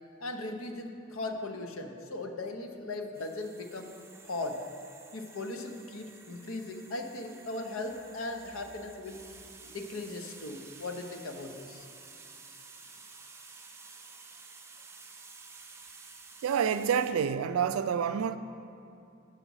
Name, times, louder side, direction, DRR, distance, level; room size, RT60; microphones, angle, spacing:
voice 1, 0.2-3.9 4.2-4.6 5.1-9.2 9.6-11.8, left 2 dB, 70° left, 0.7 m, -38 dB
sound 1, 3.1-17.1, right 4 dB, 15° right, 0.5 m, -52 dB
voice 2, 16.4-18.4, right 7 dB, 80° right, 0.3 m, -28 dB
7.2 x 6.0 x 5.4 m
head